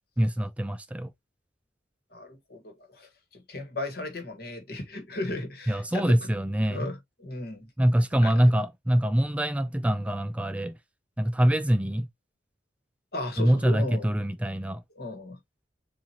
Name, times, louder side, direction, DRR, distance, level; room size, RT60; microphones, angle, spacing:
voice 1, 0.2-1.1 5.7-6.9 7.8-10.8 11.2-12.1 13.4-14.8, equal, 10° right, 0.3 m, -24 dB
voice 2, 2.1-6.3 6.6-7.7 8.0-8.4 13.1-14.1 14.9-15.4, left 2 dB, 60° left, 1.4 m, -36 dB
7.3 x 2.5 x 2.9 m
head